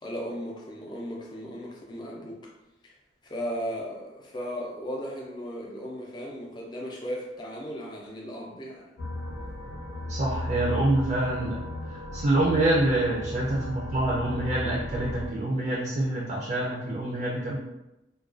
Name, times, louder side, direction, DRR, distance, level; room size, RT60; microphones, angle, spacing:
voice 1, 0.0-2.5 2.8-2.9 3.2-8.9, equal, 25° left, -2 dB, 0.4 m, -36 dB
sound 1, 9.0-15.3, left 1 dB, 80° left, 0.7 m, -35 dB
voice 2, 10.1-11.6 11.9-17.6, right 1 dB, 35° right, -5 dB, 0.4 m, -26 dB
2.3 x 2.2 x 2.4 m, 0.95 s
head